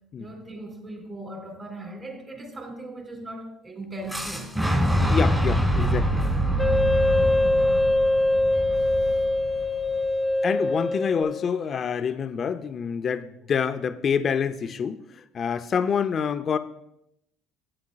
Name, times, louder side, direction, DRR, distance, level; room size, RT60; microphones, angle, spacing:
voice 1, 0.2-4.6, right 1 dB, 30° right, 2.9 m, -38 dB
Fire / Explosion, 4.1-10.0, equal, 10° right, 1.7 m, -25 dB
voice 2, 5.1-6.2 10.4-16.6, left 7 dB, 45° left, 0.6 m, -27 dB
Wind instrument woodwind instrument, 6.6-11.7, left 1 dB, 15° left, 0.8 m, -23 dB
13.0 x 8.6 x 2.4 m
supercardioid pair, 95°, 0 cm